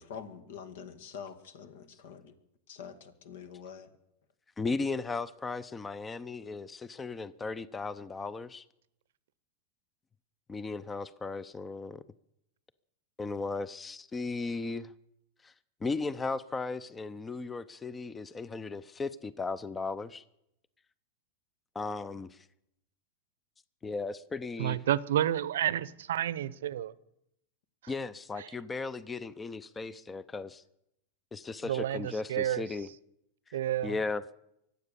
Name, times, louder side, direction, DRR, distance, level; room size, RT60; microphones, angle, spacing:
voice 1, 0.0-2.3 2.7-3.9, left 7 dB, 75° left, 2.0 m, -45 dB
voice 2, 4.6-8.6 10.5-12.0 13.2-14.9 15.4-15.5 15.8-20.2 21.7-22.5 23.8-24.8 27.9-30.6 31.3-32.9 33.5-34.2, left 3 dB, 15° left, 0.6 m, -36 dB
voice 3, 24.6-26.9 28.4-28.5 31.6-32.6 33.5-33.9, right 11 dB, 80° right, 0.7 m, -30 dB
23.5 x 8.3 x 6.9 m
hypercardioid pair, 120°, 0 cm